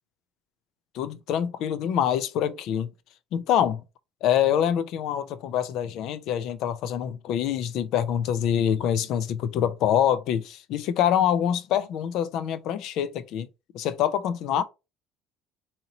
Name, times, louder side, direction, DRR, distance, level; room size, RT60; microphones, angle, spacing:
voice 1, 0.9-2.9 3.3-3.8 4.2-13.5 13.7-14.6, left 9 dB, 60° left, 0.4 m, -25 dB
2.9 x 2.8 x 3.9 m
cardioid pair, 165°, 0 cm